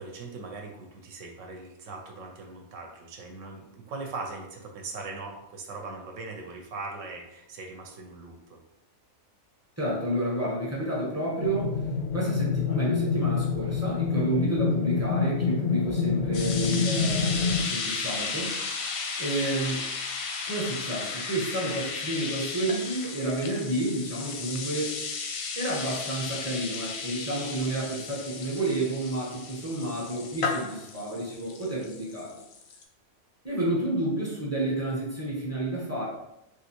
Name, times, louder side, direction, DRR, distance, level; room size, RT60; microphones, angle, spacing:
voice 1, 0.0-8.6, right 3 dB, 75° right, 2 dB, 0.9 m, -40 dB
voice 2, 9.8-11.8 12.1-18.6 19.2-19.9 20.5-24.9 25.5-32.4 33.4-36.1, right 1 dB, 15° right, -5 dB, 0.6 m, -30 dB
sound 1, 11.4-17.7, left 5 dB, 65° left, 0.7 m, -27 dB
sound 2, 16.3-32.8, left 4 dB, 85° left, 1.0 m, -35 dB
3.3 x 2.6 x 2.8 m, 0.86 s
omnidirectional pair, 1.4 m